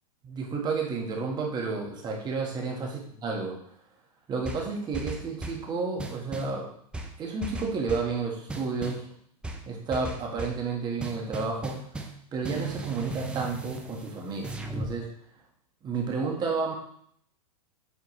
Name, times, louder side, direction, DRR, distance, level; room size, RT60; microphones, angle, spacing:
voice 1, 0.2-2.9 3.2-3.5 4.3-6.7 7.2-9.0 9.6-12.0 12.3-15.1 15.8-16.7, right 4 dB, 20° right, 0 dB, 1.5 m, -31 dB
sound 1, 4.4-5.7 6.0-6.6 6.9-8.1 8.5-9.1 9.4-10.6 11.0-12.2 12.4-14.9, right 2 dB, 5° right, 0.5 m, -37 dB
8.2 x 4.4 x 3.1 m, 0.65 s
hypercardioid pair, 135°, 19 cm